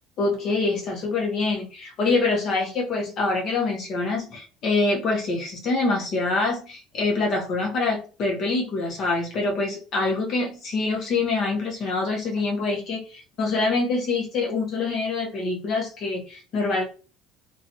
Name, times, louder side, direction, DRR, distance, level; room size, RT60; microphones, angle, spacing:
voice 1, 0.2-16.8, left 3 dB, 45° left, 1 dB, 0.8 m, -25 dB
2.7 x 2.3 x 2.6 m, 0.37 s
cardioid pair, 145°, 0 cm